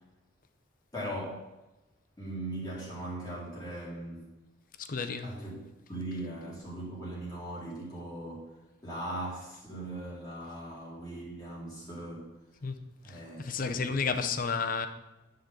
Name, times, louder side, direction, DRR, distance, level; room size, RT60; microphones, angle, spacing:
voice 1, 0.9-1.4 2.2-4.2 5.2-8.5 8.8-12.3 13.0-14.1, right 1 dB, 20° left, 2.2 m, -39 dB
voice 2, 4.8-5.3 12.6-12.8 13.1-14.9, left 5 dB, 45° left, 0.6 m, -32 dB
10.0 x 3.8 x 6.6 m
head